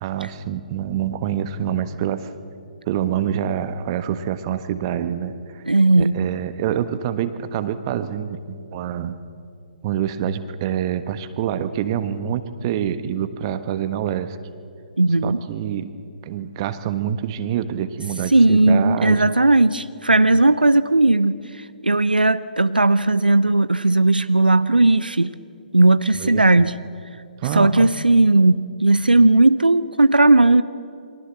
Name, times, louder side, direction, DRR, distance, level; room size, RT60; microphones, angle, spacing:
voice 1, 0.0-2.3 2.9-5.6 6.0-9.2 9.8-14.4 15.2-19.3 26.1-26.6 27.4-27.9, right 9 dB, 30° right, 11 dB, 1.3 m, -26 dB
voice 2, 5.7-6.2 15.0-15.4 18.3-25.3 25.7-26.7 27.5-30.6, right 2 dB, 85° right, 14 dB, 0.7 m, -16 dB
28.5 x 23.0 x 7.5 m, 2.4 s
figure-of-eight pair, 135°, 5 cm